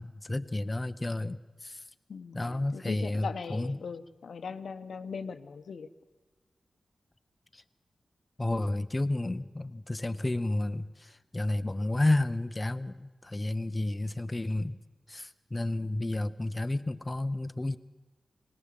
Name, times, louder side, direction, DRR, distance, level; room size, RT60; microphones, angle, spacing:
voice 1, 0.0-1.8 2.3-3.8 7.5-7.6 8.4-14.8 15.1-17.8, left 2 dB, 25° left, 0.7 m, -31 dB
voice 2, 2.1-5.9, left 5 dB, 85° left, 0.9 m, -40 dB
19.5 x 18.0 x 7.5 m
cardioid pair, 65°, 0 cm